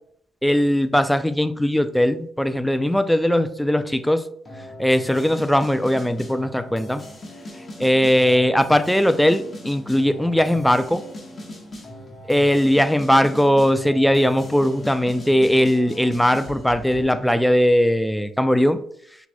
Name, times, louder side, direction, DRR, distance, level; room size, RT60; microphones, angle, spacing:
voice 1, 0.4-4.2 4.8-7.0 7.8-11.0 12.3-18.8, equal, 5° left, 11 dB, 0.3 m, -19 dB
sound 1, 4.5-17.4, left 1 dB, 30° left, 1.3 m, -39 dB
5.9 x 2.9 x 2.3 m, 0.66 s
cardioid pair, 90°, 0 cm